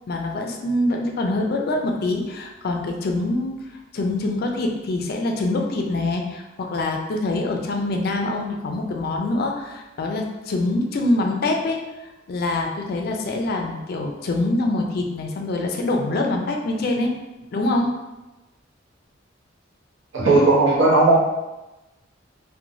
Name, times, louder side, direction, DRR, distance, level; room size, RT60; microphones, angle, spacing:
voice 1, 0.1-3.6 3.9-17.1 17.5-17.9, left 2 dB, 50° left, 2 dB, 0.4 m, -25 dB
voice 2, 20.1-21.2, right 2 dB, 75° right, -4 dB, 0.7 m, -16 dB
3.0 x 2.1 x 2.6 m, 1.0 s
head